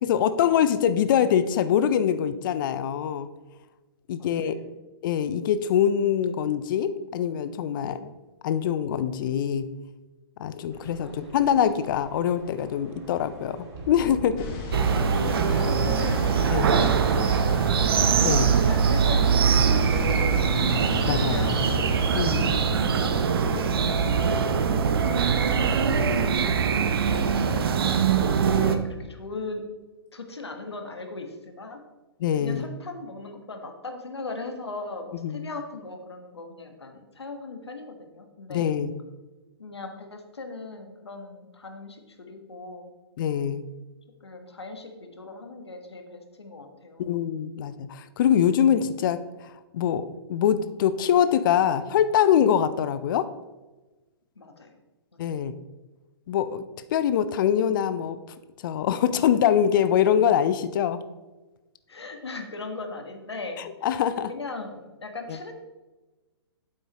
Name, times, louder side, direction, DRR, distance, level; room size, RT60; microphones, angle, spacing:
voice 1, 0.0-3.3 4.1-4.6 5.0-8.1 8.4-9.7 10.4-14.5 16.5-16.7 18.2-18.5 21.1-21.5 22.2-22.6 32.2-32.7 35.1-35.5 38.5-38.9 43.2-43.6 47.0-53.3 55.2-55.5 56.3-56.6 56.9-58.2 58.6-61.0 63.8-64.3, left 9 dB, 50° left, 13 dB, 0.5 m, -24 dB
voice 2, 4.2-4.6 11.0-11.4 15.1-17.7 18.6-20.5 20.9-21.8 22.8-26.7 27.0-27.7 28.4-29.6 30.1-31.8 32.4-38.7 39.6-42.9 44.2-47.0 54.4-54.7 61.9-63.6 64.3-65.5, left 3 dB, 90° left, 4 dB, 1.4 m, -39 dB
sound 1, 10.7-19.4, right 2 dB, 40° right, 2.4 m, -44 dB
sound 2, 14.4-22.6, left 2 dB, 30° left, 1.7 m, -34 dB
sound 3, 14.7-28.8, right 6 dB, 65° right, 0.8 m, -22 dB
9.2 x 7.8 x 3.0 m, 1.2 s
hypercardioid pair, 125°, 13 cm